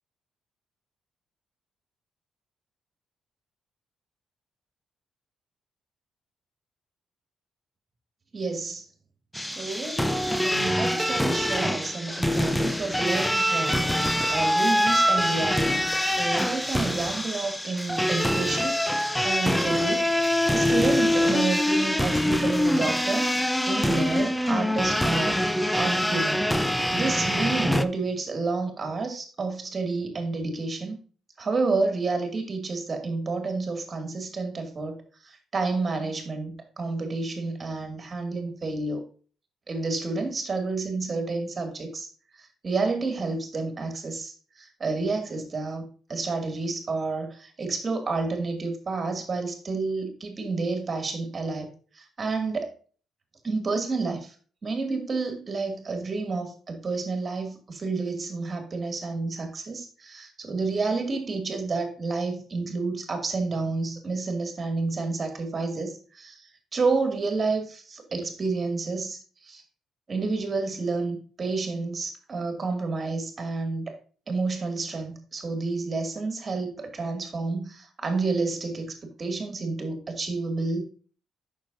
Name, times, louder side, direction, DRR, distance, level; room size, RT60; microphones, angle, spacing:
voice 1, 8.3-8.8 9.5-10.1 10.4-15.8 16.1-18.8 19.2-20.1 20.5-23.4 23.7-25.4 25.7-31.0 31.4-39.0 39.7-42.1 42.4-51.7 51.9-52.7 53.4-54.3 54.6-69.6 70.1-73.9 74.3-80.8, right 3 dB, 35° right, 5 dB, 2.4 m, -30 dB
sound 1, 9.3-27.8, left 1 dB, 5° left, 0.7 m, -24 dB
9.1 x 6.6 x 2.7 m, 0.40 s
cardioid pair, 90°, 0 cm